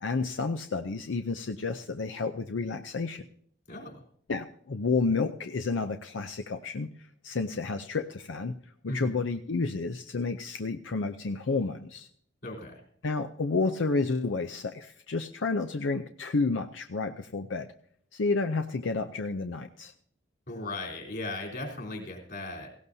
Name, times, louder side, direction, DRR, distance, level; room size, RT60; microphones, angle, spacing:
voice 1, 0.0-3.3 4.3-8.6 8.8-12.1 13.0-17.7 18.1-19.9, left 4 dB, 90° left, 7 dB, 0.6 m, -30 dB
voice 2, 3.7-4.0 8.9-9.1 12.4-12.8 20.5-22.7, left 2 dB, 60° left, 0 dB, 3.8 m, -37 dB
17.5 x 17.0 x 2.7 m, 0.63 s
head